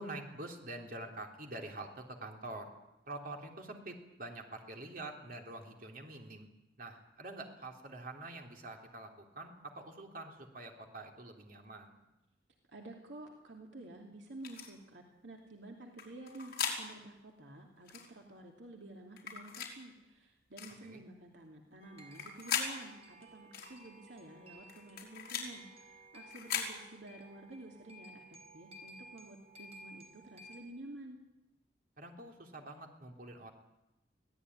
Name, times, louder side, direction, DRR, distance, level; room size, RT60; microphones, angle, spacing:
voice 1, 0.0-2.7 3.1-6.5 6.8-12.0 20.8-21.0 32.0-33.5, right 2 dB, 50° right, 2 dB, 3.6 m, -46 dB
voice 2, 12.7-31.2, right 2 dB, 70° right, 1 dB, 2.8 m, -51 dB
sound 1, 14.4-14.7 16.0-16.8 17.9-18.1 19.2-19.7 20.6-20.8 22.0-22.7 23.5-23.7 24.7-25.5 26.3-26.7, left 7 dB, 55° left, 4.7 m, -38 dB
sound 2, 21.8-30.6, right 1 dB, 35° right, 4.6 m, -56 dB
24.0 x 17.0 x 9.9 m, 0.95 s
head